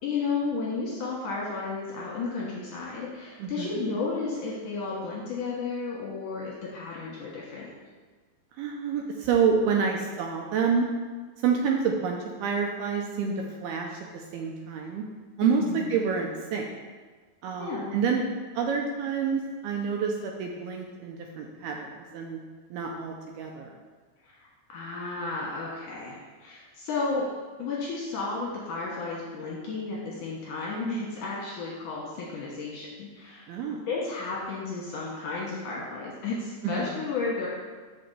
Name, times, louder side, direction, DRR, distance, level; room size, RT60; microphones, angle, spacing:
voice 1, 0.0-7.7 15.4-16.0 17.6-17.9 24.2-27.3 27.6-33.4 33.9-37.5, left 4 dB, 70° left, -5 dB, 2.2 m, -33 dB
voice 2, 3.4-3.8 8.6-10.9 11.4-13.3 13.6-15.0 15.4-16.7 17.4-18.2 18.6-22.4 22.7-23.7 33.5-33.8 36.6-36.9, right 6 dB, 80° right, 1 dB, 2.4 m, -28 dB
5.8 x 5.1 x 6.7 m, 1.4 s
omnidirectional pair, 4.9 m